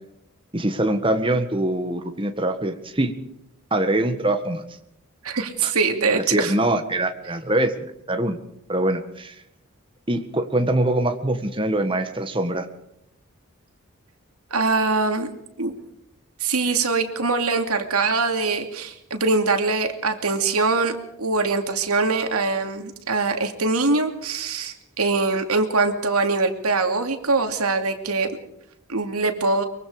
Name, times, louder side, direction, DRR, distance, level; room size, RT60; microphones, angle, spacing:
voice 1, 0.5-3.1 3.7-4.6 5.6-5.7 6.1-7.7 8.1-8.4 8.7-9.3 10.1-12.7, right 1 dB, 25° right, 7 dB, 1.7 m, -23 dB
voice 2, 5.2-6.5 14.5-15.3 15.6-15.7 16.4-28.3 28.9-29.6, right 3 dB, 85° right, 6 dB, 2.7 m, -23 dB
23.5 x 23.0 x 5.0 m, 0.78 s
head